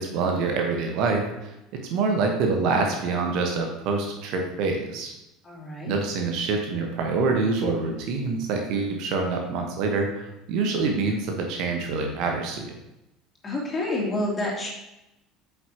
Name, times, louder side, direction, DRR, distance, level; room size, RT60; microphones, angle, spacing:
voice 1, 0.0-1.5 1.9-5.1 5.9-12.7, right 4 dB, 50° right, 3 dB, 1.2 m, -26 dB
voice 2, 5.4-5.9 13.4-14.7, left 1 dB, 25° left, -4 dB, 3.0 m, -28 dB
9.0 x 7.0 x 2.9 m, 0.92 s
figure-of-eight pair, 65°, 0 cm